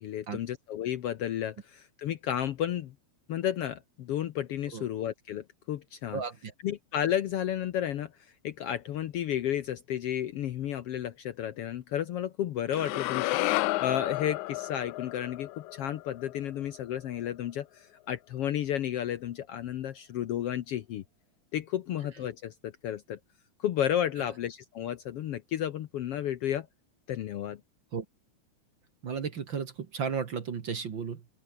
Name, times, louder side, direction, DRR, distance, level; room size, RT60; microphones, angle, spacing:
voice 1, 0.0-2.9 3.3-6.2 6.6-8.1 8.4-21.0 21.5-23.2 23.6-26.7 27.1-27.6, left 10 dB, 65° left, 1.6 m, -32 dB
voice 2, 6.1-6.5 27.9-28.1 29.0-31.3, right 6 dB, 45° right, 2.0 m, -34 dB
sound 1, 12.7-16.9, left 19 dB, 80° left, 2.0 m, -32 dB
open air
omnidirectional pair, 3.4 m